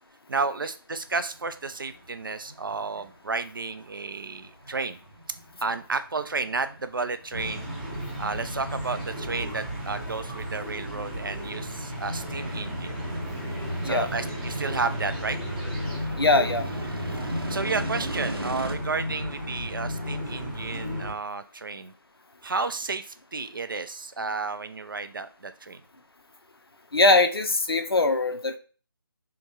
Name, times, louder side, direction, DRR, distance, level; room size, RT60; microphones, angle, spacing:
voice 1, 0.3-5.0 5.6-7.7 8.2-12.9 13.8-15.4 17.1-21.9 22.4-25.8, right 4 dB, 60° right, 11 dB, 0.4 m, -32 dB
sound 1, 1.0-18.7, right 1 dB, 80° right, 0.8 m, -41 dB
sound 2, 7.3-21.1, equal, ahead, 0.5 m, -33 dB
sound 3, 7.4-16.0, right 1 dB, 20° right, 0.9 m, -51 dB
voice 2, 16.2-16.7 26.9-28.6, left 2 dB, 80° left, 8 dB, 0.5 m, -21 dB
3.6 x 2.9 x 2.7 m, 0.38 s
figure-of-eight pair, 155°, 12 cm